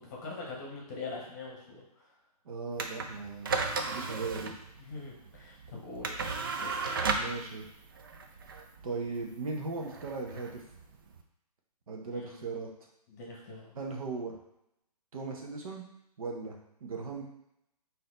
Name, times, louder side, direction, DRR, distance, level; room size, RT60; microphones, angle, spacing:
voice 1, 0.0-2.1 4.8-6.3 6.6-7.0 12.1-12.4 13.1-13.7, left 3 dB, 25° left, -2 dB, 1.0 m, -43 dB
voice 2, 2.4-3.5 3.8-4.5 7.2-7.7 8.8-10.6 11.9-12.7 13.7-14.4 15.1-15.8 16.2-17.2, right 4 dB, 60° right, 0 dB, 1.0 m, -37 dB
sound 1, 2.7-11.2, right 4 dB, 35° right, 0.4 m, -35 dB
4.0 x 2.8 x 3.8 m, 0.80 s
hypercardioid pair, 155°, 21 cm